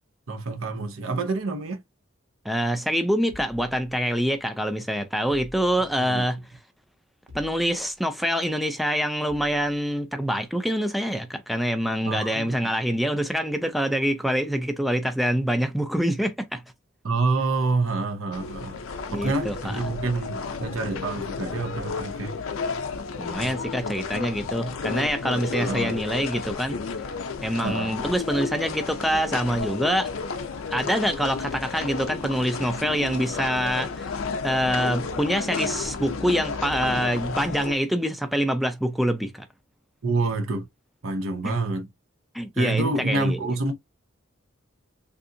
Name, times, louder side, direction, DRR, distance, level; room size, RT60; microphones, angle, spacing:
voice 1, 0.3-1.8 6.0-6.2 12.1-12.6 17.0-18.8 19.1-22.4 23.4-23.5 25.6-25.9 27.6-27.9 40.0-40.7 41.0-41.9 42.6-43.7, right 3 dB, 80° right, 0.8 m, -27 dB
voice 2, 2.4-6.5 7.3-16.6 19.1-19.8 23.2-26.8 27.4-30.1 30.7-34.1 34.4-39.5 42.3-43.5, equal, ahead, 0.4 m, -25 dB
sound 1, 7.3-8.0 9.3-9.8, left 1 dB, 60° right, 1.2 m, -47 dB
sound 2, 18.3-37.7, left 4 dB, 85° left, 0.5 m, -32 dB
3.5 x 2.5 x 2.6 m
head